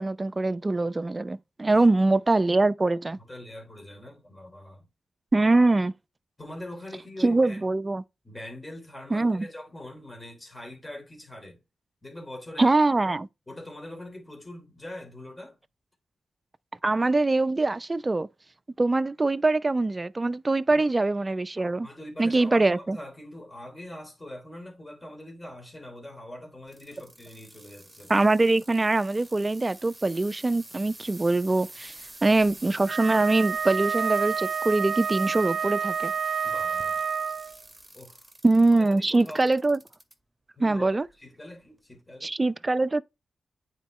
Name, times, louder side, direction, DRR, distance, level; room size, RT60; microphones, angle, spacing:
voice 1, 0.0-3.2 5.3-5.9 7.2-8.0 9.1-9.5 12.6-13.3 16.8-18.3 18.8-21.9 22.2-23.0 28.1-31.9 32.2-36.1 38.4-39.8 40.6-41.1 42.2-43.0, right 2 dB, 30° right, 0.5 m, -23 dB
voice 2, 3.2-4.9 6.4-7.6 8.2-11.6 12.0-12.7 13.5-15.6 20.7-20.9 21.8-28.1 32.2-32.4 36.4-37.1 37.9-38.3 38.7-39.5 40.6-42.3, left 1 dB, 20° left, 3.4 m, -43 dB
sound 1, 26.7-40.1 40.7-41.1 41.8-41.9, right 1 dB, 15° right, 1.9 m, -47 dB
Wind instrument woodwind instrument, 32.9-37.6, right 6 dB, 75° right, 0.6 m, -29 dB
9.1 x 4.5 x 3.1 m
supercardioid pair, 45°, 0 cm